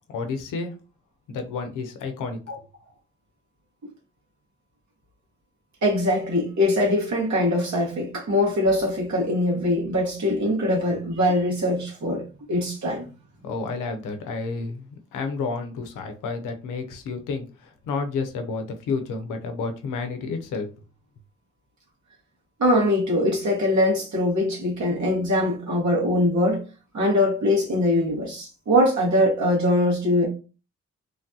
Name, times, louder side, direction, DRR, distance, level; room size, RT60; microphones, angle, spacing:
voice 1, 0.1-0.7 1.3-2.4 13.4-20.7, left 4 dB, 90° left, 0.6 m, -30 dB
voice 2, 5.8-13.0 22.6-26.6 26.9-30.3, left 1 dB, 65° right, 1.5 m, -22 dB
3.2 x 2.2 x 2.7 m
supercardioid pair, 55°, 30 cm